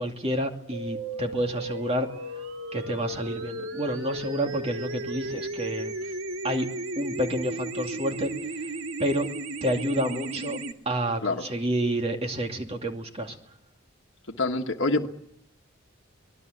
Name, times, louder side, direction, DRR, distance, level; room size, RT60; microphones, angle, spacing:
voice 1, 0.0-2.1 2.7-5.9 6.4-6.7 7.0-8.7 9.0-9.3 9.6-10.6 10.9-13.4, equal, 30° right, 4 dB, 2.5 m, -29 dB
sound 1, 0.7-10.7, right 2 dB, 80° right, 1.9 m, -35 dB
voice 2, 14.3-15.1, left 2 dB, 60° left, 2 dB, 1.6 m, -26 dB
24.0 x 20.0 x 8.1 m, 0.76 s
head